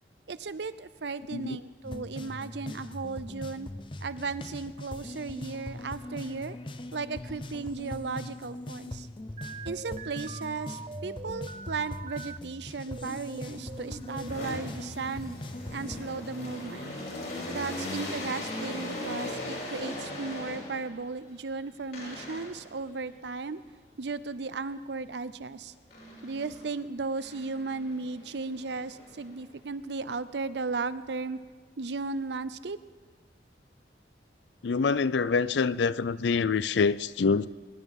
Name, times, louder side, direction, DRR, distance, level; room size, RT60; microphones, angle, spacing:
voice 1, 0.3-3.7 4.0-6.6 6.9-9.1 9.7-15.4 15.7-16.9 17.5-23.6 24.0-25.7 26.2-31.4 31.8-32.8, right 4 dB, 75° right, 0.6 m, -35 dB
sound 1, 1.8-16.0, left 1 dB, 25° left, 0.6 m, -41 dB
sound 2, 9.4-12.4 12.9-14.5, right 4 dB, 35° right, 0.4 m, -43 dB
sound 3, 13.4-21.0 21.9-22.7 25.9-26.7 27.2-29.6, left 1 dB, 55° left, 4.1 m, -39 dB
voice 2, 34.6-37.5, left 5 dB, 80° left, 0.5 m, -26 dB
22.0 x 11.0 x 5.4 m
head